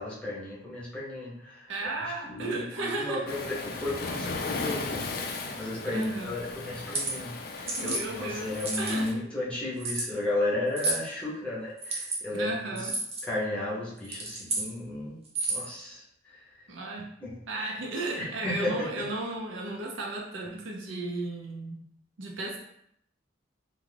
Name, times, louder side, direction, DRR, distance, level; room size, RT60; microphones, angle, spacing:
voice 1, 0.0-1.7 2.2-12.9 13.2-15.2 15.5-16.0 17.2-17.4 18.2-19.1, left 2 dB, 5° left, -6 dB, 0.7 m, -34 dB
voice 2, 1.7-3.3 5.9-6.4 7.7-9.1 12.3-13.0 16.7-17.1 17.5-21.8 22.2-22.6, right 2 dB, 85° right, 0 dB, 0.6 m, -34 dB
Waves surf, 3.3-9.1, left 3 dB, 55° left, 0.4 m, -36 dB
sound 1, 6.7-7.1 7.7-8.0 8.5-9.1 9.8-10.1 10.8-11.0 11.8-12.2 12.8-13.2 14.0-14.7 15.2-15.7, right 2 dB, 35° right, 0.7 m, -31 dB
2.4 x 2.3 x 3.3 m, 0.73 s
head